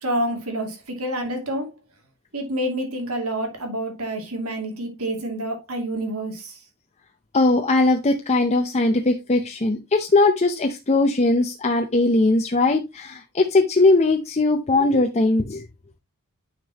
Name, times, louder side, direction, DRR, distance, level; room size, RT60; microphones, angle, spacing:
voice 1, 0.0-1.7 2.3-6.6, right 1 dB, 90° right, 2.5 m, -28 dB
voice 2, 7.3-15.6, left 2 dB, 30° left, 0.7 m, -20 dB
9.3 x 5.2 x 2.9 m
head